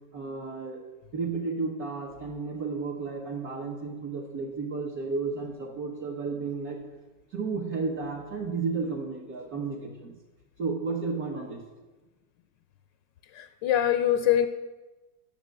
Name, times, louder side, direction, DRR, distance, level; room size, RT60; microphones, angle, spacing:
voice 1, 0.1-0.8 1.1-6.8 7.3-10.1 10.6-11.6, right 4 dB, 50° right, -3 dB, 1.6 m, -32 dB
voice 2, 13.3-14.5, left 10 dB, 75° left, 10 dB, 1.2 m, -23 dB
12.0 x 7.3 x 6.6 m, 1.2 s
omnidirectional pair, 2.1 m